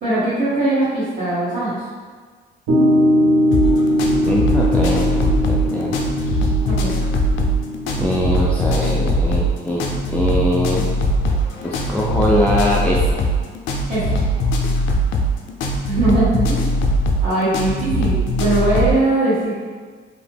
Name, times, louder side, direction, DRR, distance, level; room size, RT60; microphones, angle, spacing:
voice 1, 0.0-1.8 6.7-6.9 13.9-14.2 15.8-16.8 17.2-19.6, right 2 dB, 50° right, -14 dB, 1.1 m, -20 dB
sound 1, 2.7-9.1, equal, 90° right, 0.8 m, -20 dB
sound 2, 3.5-19.0, equal, 80° left, 0.4 m, -20 dB
voice 2, 4.3-6.0 8.0-9.8 10.1-10.9 11.6-13.3, equal, 5° left, -5 dB, 0.3 m, -22 dB
2.8 x 2.0 x 3.3 m, 1.5 s
cardioid pair, 90°, 20 cm